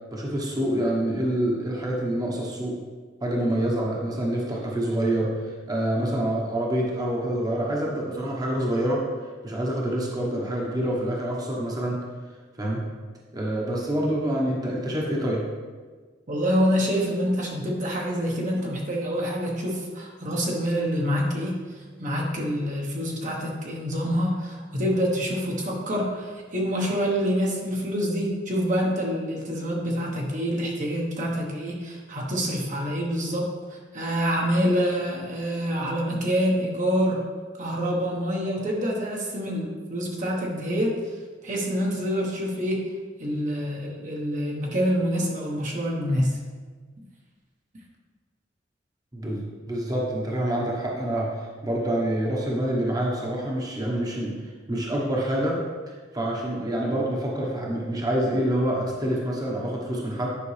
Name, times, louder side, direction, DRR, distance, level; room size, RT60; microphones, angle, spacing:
voice 1, 0.1-2.8 3.2-9.1 9.4-12.0 12.6-12.8 13.3-15.4 49.1-54.4 54.7-55.6 55.9-60.3, right 1 dB, 20° right, -3 dB, 1.1 m, -27 dB
voice 2, 16.3-33.5 33.9-37.2 37.6-41.0 41.4-42.9 43.2-46.4, equal, 45° right, -2 dB, 1.1 m, -26 dB
10.0 x 5.2 x 3.3 m, 1.5 s
head